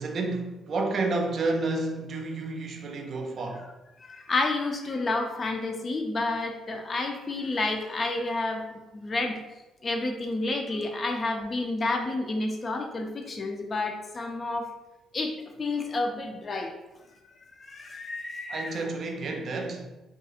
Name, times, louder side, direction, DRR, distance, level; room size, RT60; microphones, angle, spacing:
voice 1, 0.0-3.7 18.5-19.9, right 3 dB, 50° right, 0.4 m, -30 dB
voice 2, 4.0-9.4 9.8-14.7 15.1-16.7 17.6-18.8, left 2 dB, 40° left, 0.4 m, -30 dB
2.3 x 2.3 x 2.7 m
figure-of-eight pair, 45°, 0 cm